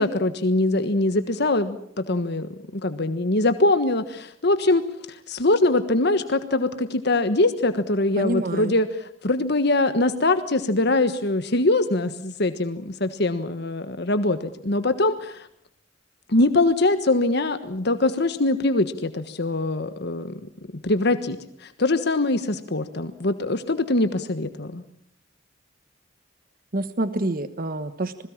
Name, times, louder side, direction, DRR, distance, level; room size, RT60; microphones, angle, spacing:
voice 1, 0.0-15.5 16.3-20.4 20.8-24.8, left 2 dB, 60° left, 10 dB, 1.4 m, -23 dB
voice 2, 8.2-8.7 26.7-28.1, right 1 dB, 50° right, 12 dB, 1.2 m, -27 dB
27.0 x 20.5 x 7.3 m, 0.66 s
head